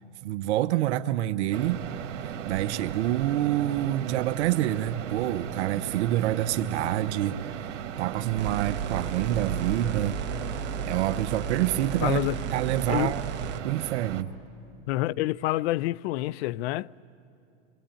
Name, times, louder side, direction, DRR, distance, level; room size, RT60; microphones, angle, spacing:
voice 1, 0.2-1.8 2.2-10.2 10.8-12.2 12.5-13.3 13.6-14.3, right 13 dB, 65° right, 0.8 m, -27 dB
sound 1, 1.5-14.2, right 9 dB, 90° right, 1.4 m, -36 dB
sound 2, 8.4-13.6, right 6 dB, 30° right, 1.5 m, -34 dB
voice 2, 12.0-12.4 12.9-13.1 14.9-16.9, left 17 dB, 60° left, 0.5 m, -27 dB
27.5 x 23.5 x 8.9 m
supercardioid pair, 130°, 37 cm